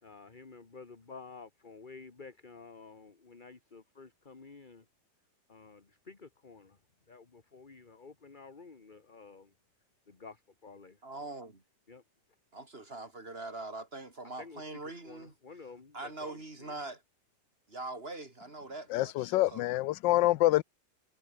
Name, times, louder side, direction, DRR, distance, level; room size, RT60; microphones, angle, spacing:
voice 1, 0.0-4.9 5.5-6.8 7.1-9.5 10.1-11.0 11.9-12.0 14.2-16.8, left 4 dB, 25° left, 1.8 m, -51 dB
voice 2, 11.0-11.6 12.5-15.3 15.9-17.0 17.7-19.7, right 2 dB, 30° right, 4.5 m, -43 dB
voice 3, 18.9-20.6, left 16 dB, 80° left, 1.3 m, -26 dB
omnidirectional pair, 2.0 m